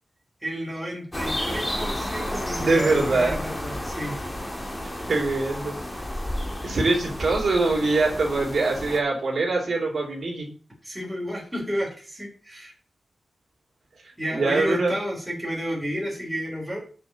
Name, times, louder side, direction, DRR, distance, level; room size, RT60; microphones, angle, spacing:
voice 1, 0.4-4.2 10.8-12.7 14.2-16.8, equal, 5° right, -3 dB, 3.8 m, -31 dB
sound 1, 1.1-9.0, left 1 dB, 15° left, 1.6 m, -32 dB
voice 2, 2.6-3.4 5.1-5.8 6.6-10.5 14.3-14.9, right 3 dB, 60° right, -1 dB, 3.2 m, -23 dB
6.6 x 5.8 x 6.9 m, 0.39 s
wide cardioid pair, 175°, 0 cm